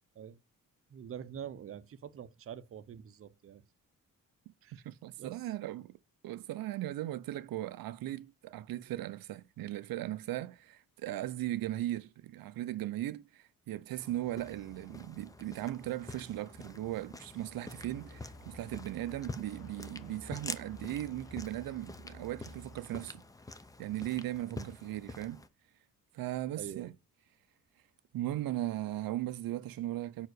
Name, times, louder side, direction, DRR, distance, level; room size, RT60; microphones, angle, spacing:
voice 1, 0.9-3.6 4.6-4.8 5.2-5.5 24.5-24.7 26.5-26.9, right 9 dB, 40° right, 0.6 m, -45 dB
voice 2, 4.7-6.0 6.2-23.2 23.8-25.4 26.1-26.9 28.1-30.3, right 14 dB, 85° right, 0.5 m, -38 dB
sound 1, 14.0-25.5, left 2 dB, 10° left, 0.5 m, -47 dB
sound 2, 17.7-22.8, equal, 85° left, 1.4 m, -53 dB
5.5 x 4.7 x 6.3 m
wide cardioid pair, 150°, 34 cm